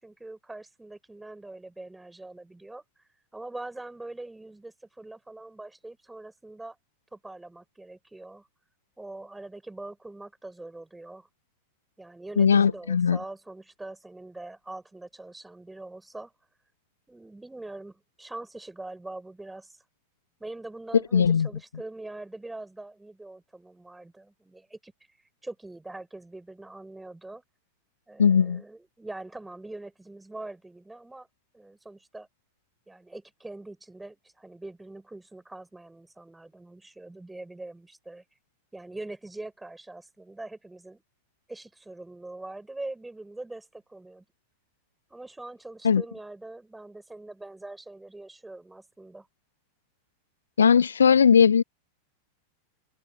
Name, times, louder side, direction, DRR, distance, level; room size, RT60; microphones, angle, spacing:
voice 1, 0.0-2.8 3.3-6.8 7.1-8.5 9.0-11.3 12.0-16.3 17.1-19.8 20.4-24.9 25.4-27.4 28.1-31.3 31.5-32.3 32.9-38.2 38.7-41.0 41.5-44.3 45.1-49.3, right 2 dB, 5° right, 5.6 m, -43 dB
voice 2, 12.4-13.2 21.1-21.5 28.2-28.6 45.8-46.0 50.6-51.6, left 7 dB, 70° left, 1.2 m, -19 dB
figure-of-eight pair, 90°, 0 cm